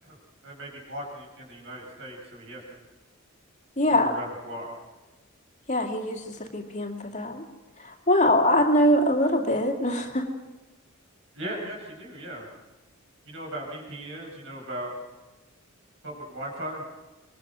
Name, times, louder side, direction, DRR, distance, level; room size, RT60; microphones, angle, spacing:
voice 1, 0.4-2.6 3.9-4.7 11.3-12.4 13.2-14.9 16.0-16.8, right 1 dB, 65° right, -2 dB, 7.5 m, -37 dB
voice 2, 3.8-4.1 5.7-7.5 7.8-10.3, left 1 dB, 35° left, 3 dB, 2.4 m, -23 dB
25.5 x 23.0 x 6.3 m, 1.1 s
head